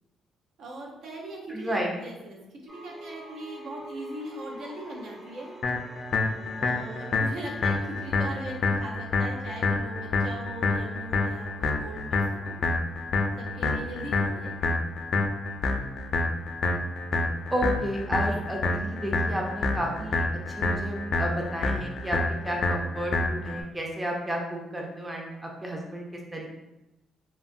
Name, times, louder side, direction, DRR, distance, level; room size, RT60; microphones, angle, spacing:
voice 1, 0.6-5.5 6.5-12.5 13.4-14.5 18.0-18.2, right 1 dB, 70° right, -2 dB, 0.6 m, -40 dB
voice 2, 1.5-1.9 17.5-26.5, equal, 15° right, -1 dB, 0.5 m, -32 dB
sound 1, 2.7-8.6, right 1 dB, 35° right, 1.2 m, -45 dB
sound 2, 5.6-23.6, left 3 dB, 55° left, 0.3 m, -28 dB
2.9 x 2.2 x 2.5 m, 0.97 s
cardioid pair, 90°, 0 cm